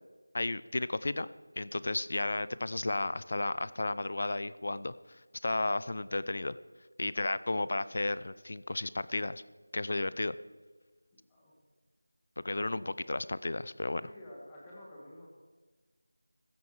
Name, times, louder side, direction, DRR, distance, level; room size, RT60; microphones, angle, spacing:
voice 1, 0.3-1.3 1.6-4.9 5.4-6.6 7.0-9.4 9.7-10.4 12.4-14.1, left 2 dB, 45° left, 17 dB, 0.4 m, -33 dB
voice 2, 12.5-12.8 14.0-15.3, left 1 dB, 10° left, -5 dB, 1.6 m, -50 dB
15.5 x 9.2 x 4.8 m, 1.3 s
figure-of-eight pair, 175°, 0 cm